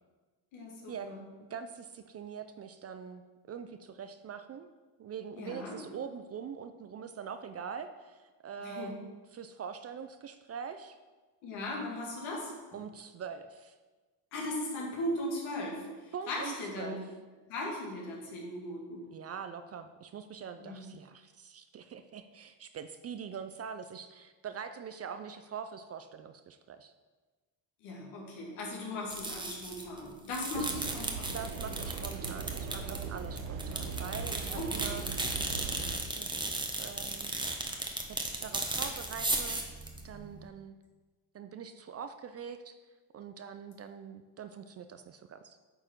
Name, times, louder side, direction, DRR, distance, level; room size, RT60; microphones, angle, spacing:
voice 1, 0.5-1.2 5.4-5.8 8.6-8.9 11.4-12.5 14.3-17.0 17.5-19.1 20.6-20.8 27.8-31.4 34.5-35.0, left 1 dB, 75° left, -3 dB, 2.4 m, -38 dB
voice 2, 1.5-4.7 5.0-11.0 12.7-13.8 16.1-17.0 19.1-26.9 30.5-30.8 31.3-35.0 35.8-37.3 38.1-39.6 40.0-40.7 41.3-42.8 43.1-45.6, right 7 dB, 35° right, 9 dB, 0.4 m, -43 dB
sound 1, 29.1-30.0 30.2-40.5, right 2 dB, 10° right, 1.0 m, -36 dB
sound 2, 30.5-36.0, right 5 dB, 85° right, 1.0 m, -39 dB
8.7 x 4.7 x 4.5 m, 1.3 s
supercardioid pair, 85°, 49 cm